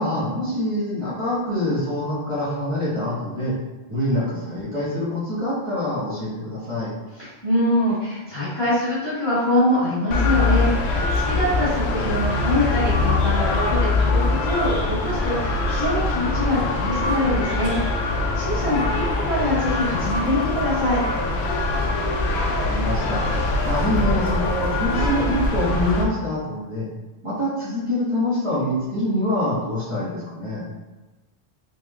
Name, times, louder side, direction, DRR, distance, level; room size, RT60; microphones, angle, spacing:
voice 1, 0.0-3.5 3.9-6.9 22.6-26.8 27.2-30.6, left 1 dB, 30° right, -11 dB, 1.5 m, -25 dB
voice 2, 7.2-17.7 18.1-21.0, left 1 dB, 25° left, -12 dB, 1.3 m, -24 dB
sound 1, 10.1-26.0, left 2 dB, 90° left, 0.8 m, -23 dB
3.6 x 3.5 x 2.3 m, 1.2 s
omnidirectional pair, 1.1 m